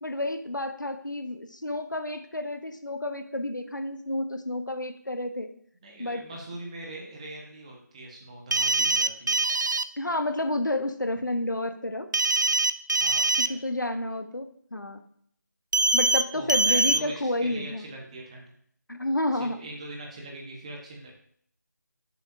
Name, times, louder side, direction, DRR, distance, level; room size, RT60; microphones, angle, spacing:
voice 1, 0.0-5.5 6.0-6.2 10.0-12.1 13.4-15.0 15.9-17.8 18.9-19.6, left 1 dB, 90° left, 8 dB, 1.0 m, -30 dB
voice 2, 5.8-9.4 13.0-13.6 16.3-18.5 19.3-21.1, right 2 dB, 20° right, 0 dB, 1.3 m, -42 dB
sound 1, 8.5-9.8 12.1-13.5 15.7-16.2 16.5-17.0, right 2 dB, 80° right, 0.5 m, -23 dB
11.5 x 7.0 x 2.7 m, 0.64 s
figure-of-eight pair, 160°, 10 cm